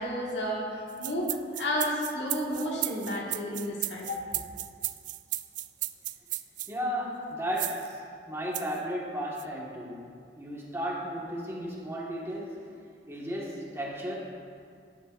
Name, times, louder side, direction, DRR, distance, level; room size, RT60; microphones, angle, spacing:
voice 1, 0.0-4.4, equal, 75° left, -3 dB, 1.8 m, -32 dB
sound 1, 0.9-6.7 7.6-7.9 8.5-8.8 9.4-9.5, right 15 dB, 45° right, 0.3 m, -34 dB
voice 2, 6.7-12.7 13.1-14.2, equal, 15° right, -4 dB, 1.6 m, -34 dB
13.0 x 10.0 x 2.6 m, 2.2 s
head